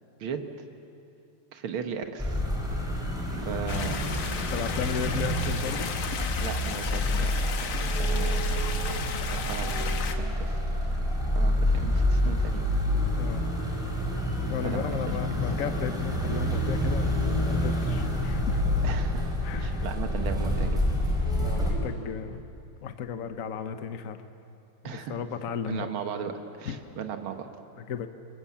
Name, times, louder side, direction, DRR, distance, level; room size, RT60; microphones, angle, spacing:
voice 1, 1.5-2.5 3.3-4.1 6.4-8.5 9.0-9.1 9.3-10.6 11.3-12.6 14.6-15.0 18.8-19.3 19.6-20.8 24.8-25.2 25.6-27.5, right 7 dB, 75° right, 6 dB, 2.2 m, -37 dB
sound 1, 2.2-21.7, left 1 dB, ahead, 4.9 m, -28 dB
sound 2, 3.7-10.2, left 6 dB, 75° left, 2.1 m, -35 dB
voice 2, 4.5-5.9 13.1-13.5 14.5-18.6 19.4-19.8 21.3-22.4 22.8-24.2 24.8-25.9 26.7-26.8 27.8-28.1, left 7 dB, 50° left, 9 dB, 1.1 m, -34 dB
29.0 x 22.0 x 7.3 m, 2.6 s
omnidirectional pair, 2.3 m